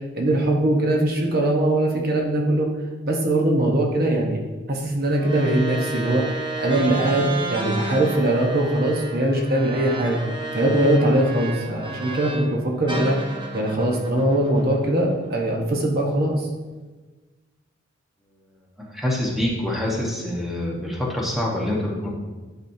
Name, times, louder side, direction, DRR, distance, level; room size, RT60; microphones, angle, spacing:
voice 1, 0.1-2.7 3.0-4.4 4.7-10.2 10.5-13.2 13.5-16.5, right 1 dB, 50° right, 0 dB, 1.1 m, -21 dB
sound 1, 5.1-12.5 12.9-15.3, right 2 dB, 25° right, 0.8 m, -32 dB
voice 2, 18.8-22.1, left 1 dB, ahead, -4 dB, 1.2 m, -26 dB
10.5 x 6.2 x 2.7 m, 1.3 s
head